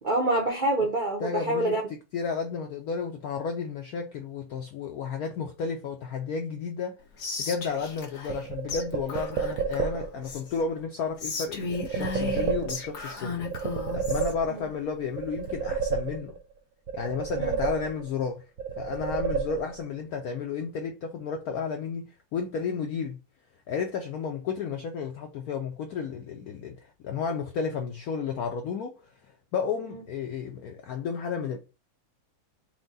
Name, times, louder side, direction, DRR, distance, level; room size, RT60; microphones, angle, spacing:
voice 1, 0.0-1.8 14.5-14.7 17.4-17.6 29.9-30.0, right 1 dB, 80° right, 0.4 m, -26 dB
voice 2, 1.2-7.0 7.4-16.4 16.9-18.4 18.8-22.0 22.3-23.2 23.7-28.9 29.2-31.6, left 5 dB, 80° left, 0.8 m, -32 dB
Whispering, 7.2-8.4 8.7-8.8 9.1-10.6 11.2-14.3, left 4 dB, 50° left, 1.0 m, -35 dB
sound 1, 8.3-10.3 11.7-13.1 13.4-14.8 15.1-16.5 16.9-18.2 18.6-19.9, right 6 dB, 60° right, 0.9 m, -31 dB
4.4 x 2.1 x 4.0 m
omnidirectional pair, 2.1 m